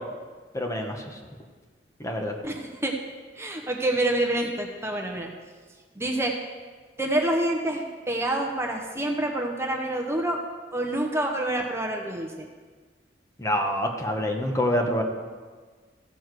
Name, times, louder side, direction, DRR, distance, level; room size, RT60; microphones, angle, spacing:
voice 1, 0.5-1.0 2.0-2.3 13.4-15.0, left 1 dB, 20° left, 2 dB, 1.1 m, -26 dB
voice 2, 2.4-3.0 3.4-5.3 6.0-6.3 7.0-10.4 10.7-12.5, right 1 dB, 15° right, 1 dB, 0.9 m, -27 dB
15.0 x 7.2 x 4.8 m, 1.4 s
head